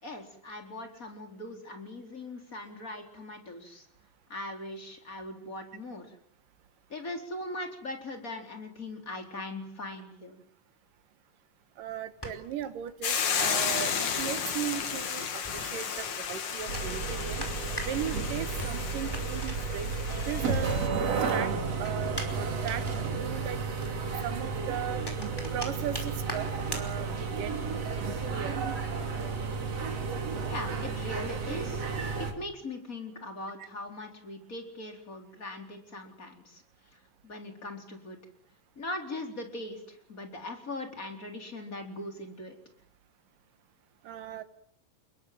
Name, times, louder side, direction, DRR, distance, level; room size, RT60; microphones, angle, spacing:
voice 1, 0.0-3.9 4.3-6.2 6.9-10.4 30.4-31.9 32.2-36.6 37.2-38.2 38.8-42.6, left 2 dB, 25° left, 4 dB, 4.3 m, -40 dB
sound 1, 11.8-20.9 21.2-27.5, equal, 5° left, 4.7 m, -44 dB
voice 2, 11.8-17.5 17.8-20.8 21.3-21.5 21.8-22.8 23.1-23.6 24.2-25.1 25.5-27.5 28.3-28.6 44.0-44.4, right 10 dB, 75° right, 12 dB, 2.8 m, -37 dB
Hiss / Boiling, 13.0-20.9, left 7 dB, 60° left, 3.3 m, -33 dB
sound 2, 16.7-32.3, right 4 dB, 50° right, 3.8 m, -32 dB
29.5 x 21.5 x 7.7 m, 0.67 s
omnidirectional pair, 4.0 m